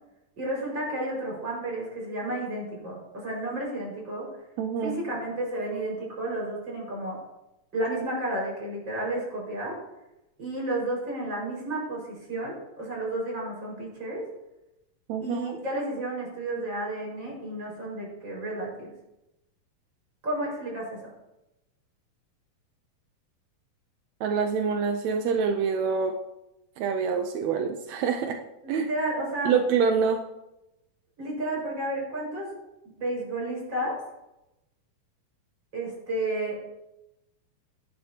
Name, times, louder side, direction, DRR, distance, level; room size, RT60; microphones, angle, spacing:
voice 1, 0.4-4.3 4.8-7.2 7.7-9.8 10.4-14.2 15.2-18.9 20.2-21.1 28.6-29.5 31.2-32.5 33.0-34.0 35.7-36.6, right 1 dB, 30° right, -3 dB, 5.9 m, -32 dB
voice 2, 4.6-5.0 15.1-15.6 24.2-26.2 26.8-28.4 28.7-28.8 29.5-30.2, right 6 dB, 75° right, 4 dB, 1.7 m, -26 dB
18.0 x 11.5 x 2.9 m, 0.93 s
omnidirectional pair, 3.9 m